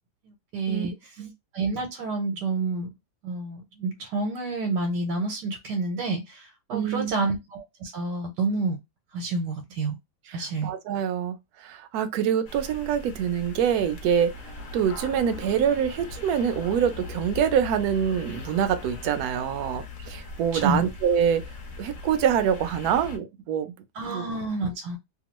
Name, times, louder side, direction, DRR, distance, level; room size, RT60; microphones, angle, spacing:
voice 1, 0.2-0.9 1.5-2.9 3.2-8.8 9.1-9.9 10.3-10.7 20.5-20.8 23.9-25.0, right 3 dB, 90° right, 1.3 m, -29 dB
voice 2, 6.7-7.3 10.3-14.3 14.7-21.4 21.8-23.7 24.1-24.2, right 8 dB, 70° right, 1.0 m, -25 dB
sound 1, 12.5-23.2, left 4 dB, 60° left, 0.9 m, -40 dB
2.9 x 2.2 x 2.9 m
omnidirectional pair, 1.8 m